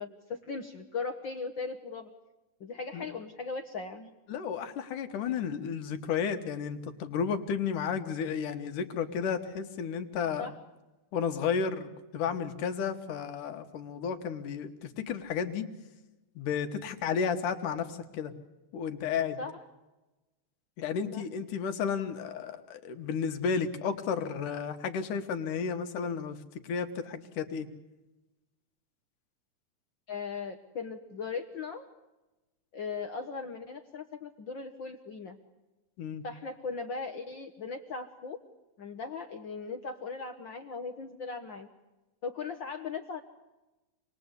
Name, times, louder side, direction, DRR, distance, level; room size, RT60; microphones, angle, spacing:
voice 1, 0.0-2.1 2.6-4.1 10.4-10.5 19.4-19.5 21.1-21.2 30.1-31.9 32.7-35.4 36.2-38.4 38.8-41.7 42.2-43.2, left 4 dB, 55° left, 4 dB, 1.3 m, -38 dB
voice 2, 4.3-10.5 11.1-15.7 16.4-18.3 18.7-19.4 20.8-26.4 26.6-27.7 36.0-36.2, left 6 dB, 80° left, 7 dB, 3.0 m, -32 dB
27.5 x 20.5 x 8.2 m, 1.1 s
omnidirectional pair, 3.6 m